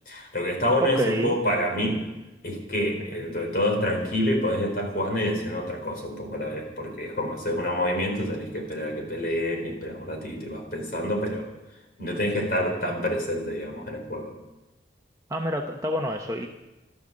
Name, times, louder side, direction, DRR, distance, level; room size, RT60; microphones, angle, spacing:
voice 1, 0.1-2.0 2.4-11.5 12.0-14.3, left 1 dB, 55° left, 2 dB, 4.5 m, -27 dB
voice 2, 0.8-1.3 15.3-16.5, equal, 20° right, 2 dB, 0.9 m, -28 dB
14.5 x 13.0 x 7.6 m, 1.0 s
head